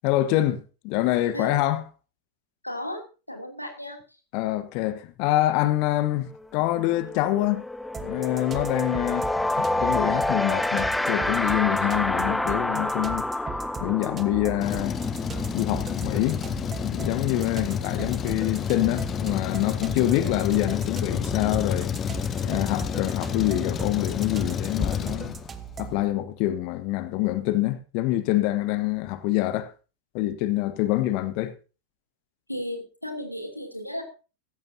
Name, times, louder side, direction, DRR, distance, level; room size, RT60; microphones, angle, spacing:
voice 1, 0.0-1.8 4.3-7.6 8.0-9.3 9.6-13.3 13.8-15.0 15.5-16.5 16.8-21.9 22.4-25.3 25.8-29.7 30.1-31.5, left 15 dB, 45° left, 1.2 m, -26 dB
voice 2, 2.6-3.0 3.3-4.0 32.5-34.0, left 1 dB, 90° left, 2.9 m, -34 dB
sound 1, 6.3-6.5 6.7-17.3, left 1 dB, 5° left, 0.6 m, -28 dB
sound 2, 7.9-26.1, right 6 dB, 20° right, 1.3 m, -39 dB
Truck, 14.6-25.8, left 7 dB, 25° left, 1.0 m, -30 dB
17.0 x 14.5 x 2.8 m
figure-of-eight pair, 90°, 0 cm